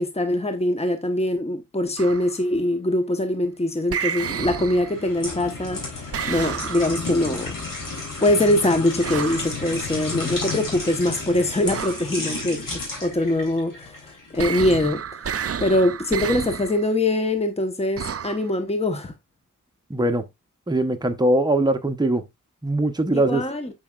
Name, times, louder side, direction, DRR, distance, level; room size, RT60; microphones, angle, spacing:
voice 1, 0.0-7.5 8.2-15.0 15.6-19.1 23.1-23.7, left 1 dB, 20° left, 1.0 m, -23 dB
sound 1, 2.0-2.4 3.9-5.1 6.1-7.1 9.0-9.6 11.7-12.1 14.4-16.8 18.0-18.5, right 7 dB, 45° right, 0.5 m, -30 dB
sound 2, 4.8-14.8 15.2-15.4, left 3 dB, 75° left, 3.5 m, -32 dB
voice 2, 19.9-20.2 20.7-22.2 22.6-23.4, right 1 dB, 10° right, 0.9 m, -21 dB
6.9 x 5.7 x 2.4 m
cardioid pair, 55°, 33 cm